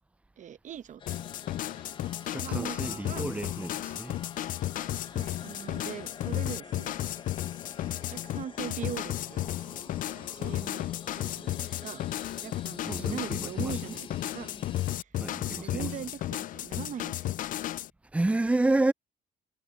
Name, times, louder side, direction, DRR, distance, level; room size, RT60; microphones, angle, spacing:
voice 1, 0.4-1.2 2.0-2.1 2.4-3.3 5.1-6.9 7.7-10.9 11.2-12.1 12.4-14.5 15.0-15.1 15.5-17.3, right 8 dB, 50° right, 0.9 m, -41 dB
sound 1, 1.0-15.0, left 6 dB, 30° left, 1.0 m, -48 dB
sound 2, 1.1-17.9, left 14 dB, 55° left, 0.4 m, -34 dB
voice 2, 2.3-4.1 12.8-13.7 15.2-15.9 18.1-18.9, right 2 dB, 5° right, 0.5 m, -29 dB
cardioid pair, 110°, 17 cm